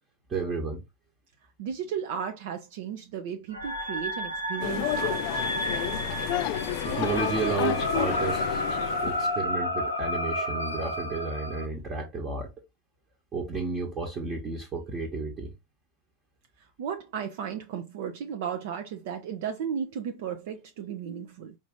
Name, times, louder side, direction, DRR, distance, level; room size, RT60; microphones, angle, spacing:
voice 1, 0.3-0.8 6.8-8.6 9.0-12.5 13.3-15.5, right 4 dB, 25° right, 1.1 m, -32 dB
voice 2, 1.6-5.6 16.6-21.6, right 8 dB, 50° right, 0.5 m, -35 dB
sound 1, 3.5-11.7, equal, 85° right, 1.1 m, -31 dB
sound 2, 4.6-9.3, left 11 dB, 45° left, 0.4 m, -31 dB
4.9 x 2.6 x 3.5 m
figure-of-eight pair, 90°, 0 cm